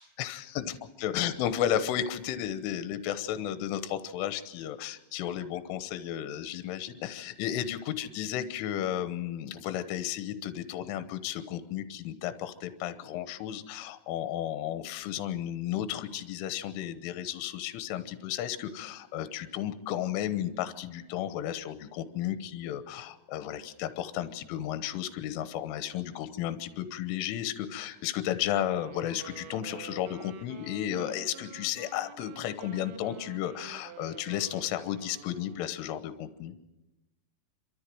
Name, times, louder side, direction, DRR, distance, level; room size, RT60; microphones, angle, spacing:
voice 1, 0.0-36.5, left 11 dB, 80° left, 11 dB, 3.4 m, -33 dB
Wind instrument woodwind instrument, 28.7-35.9, right 12 dB, 75° right, 3.2 m, -49 dB
29.0 x 13.5 x 7.7 m, 0.99 s
omnidirectional pair, 5.8 m